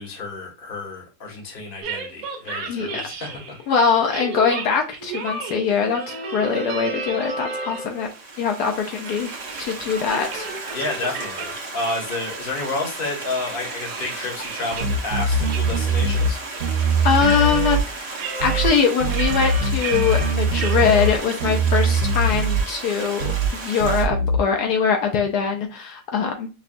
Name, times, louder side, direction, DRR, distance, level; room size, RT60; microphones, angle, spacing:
voice 1, 0.0-3.6 10.7-16.4, left 2 dB, 35° left, 1.1 m, -30 dB
sound 1, 1.8-3.6 4.1-8.1 8.4-11.9 12.3-12.4 12.8-15.0 15.5-15.6 15.9-17.8 18.1-21.1, right 3 dB, 65° right, 1.1 m, -33 dB
voice 2, 2.7-3.0 3.7-8.1 8.4-9.3 9.6-10.8 17.0-26.5, left 6 dB, 75° left, 1.1 m, -22 dB
Stream, 7.7-24.0, right 3 dB, 35° right, 0.7 m, -35 dB
sound 2, 14.8-16.3 16.6-17.9 18.4-18.7 19.0-21.1 21.4-22.7 23.2-23.5 23.8-24.4, right 2 dB, 90° right, 1.3 m, -21 dB
5.4 x 2.2 x 2.5 m
omnidirectional pair, 1.8 m